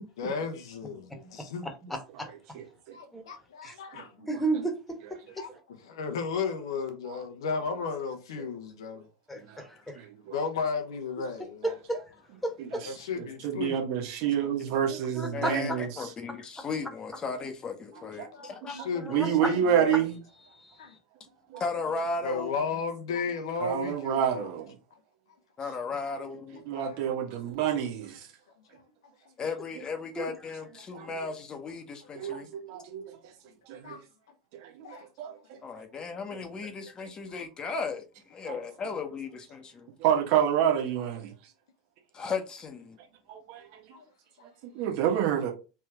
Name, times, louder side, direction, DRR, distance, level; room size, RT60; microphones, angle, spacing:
voice 1, 0.2-1.7 2.9-4.3 5.4-9.1 10.3-11.7 12.8-13.8 17.9-20.1 20.8-20.9 22.2-24.5 26.0-26.1 26.6-27.4 28.7-28.8 29.3-29.4 30.9-31.0 32.2-32.3 33.8-34.1 34.8-35.1 43.9-44.1, left 5 dB, 70° left, 0.8 m, -35 dB
voice 2, 1.6-2.3 3.1-3.2 3.6-3.7 4.3-5.2 9.3-10.0 11.6-12.0 12.4-12.9 15.1-15.8 18.7-19.5 20.6-20.7 30.1-30.3, right 2 dB, 5° left, 1.3 m, -33 dB
voice 3, 2.5-3.0 3.9-4.3 7.0-7.2 9.5-9.6 9.9-10.3 12.6-12.7 13.2-16.1 18.2-18.3 18.6-18.8 19.1-20.2 21.5-21.6 23.6-24.7 26.2-26.3 26.7-28.3 30.9-31.1 32.1-33.0 33.7-34.0 34.6-35.6 37.0-37.1 38.5-38.6 40.0-41.3 43.3-43.8 44.6-45.5, right 9 dB, 55° right, 1.4 m, -29 dB
voice 4, 15.3-18.8 21.6-22.5 25.6-26.6 29.4-32.5 35.6-39.9 42.1-43.0, left 4 dB, 30° left, 1.0 m, -36 dB
3.4 x 3.2 x 3.5 m
hypercardioid pair, 85°, 3 cm